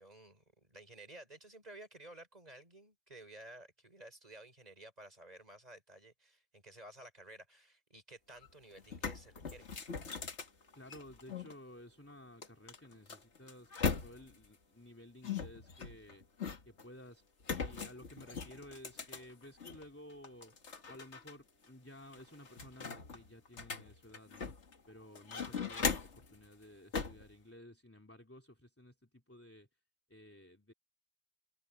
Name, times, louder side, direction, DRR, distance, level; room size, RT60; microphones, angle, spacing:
voice 1, 0.0-9.7, right 1 dB, 35° right, 4.8 m, -54 dB
sound 1, 8.4-8.5 8.8-11.5 12.4-14.4 15.2-16.8 17.4-19.8 20.2-21.3 21.6-21.7 22.1-24.7 25.1-26.3 26.9-27.3, left 5 dB, 70° left, 2.0 m, -39 dB
voice 2, 10.7-16.3 16.6-20.5 20.9-24.6 24.9-29.7 30.1-30.7, left 1 dB, 10° left, 3.2 m, -55 dB
omnidirectional pair, 1.2 m